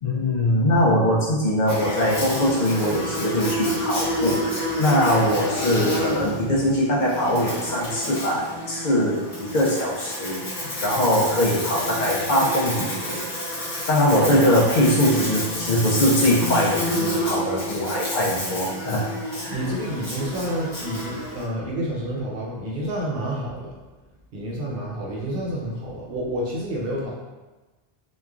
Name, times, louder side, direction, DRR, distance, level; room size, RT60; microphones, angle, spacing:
voice 1, 0.0-13.2 13.9-19.0 19.4-19.7, equal, 60° left, -5 dB, 0.6 m, -22 dB
Buzz, 1.7-21.4, left 1 dB, 75° left, 1.0 m, -29 dB
voice 2, 14.1-14.5 19.5-23.7 24.3-27.1, right 1 dB, 70° right, -4 dB, 0.8 m, -29 dB
3.0 x 2.2 x 2.3 m, 1.2 s
omnidirectional pair, 1.0 m